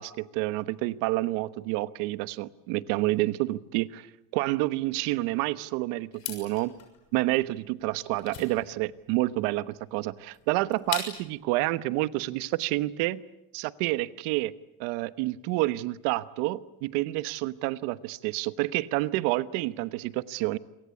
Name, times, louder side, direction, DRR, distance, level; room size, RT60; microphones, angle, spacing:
voice 1, 0.0-4.1 4.3-6.7 7.1-13.2 13.5-14.5 14.8-20.6, right 18 dB, 90° right, 14 dB, 1.3 m, -29 dB
sound 1, 6.1-11.4, left 9 dB, 45° left, 6.6 m, -40 dB
28.0 x 23.5 x 8.4 m, 0.91 s
cardioid pair, 160°, 49 cm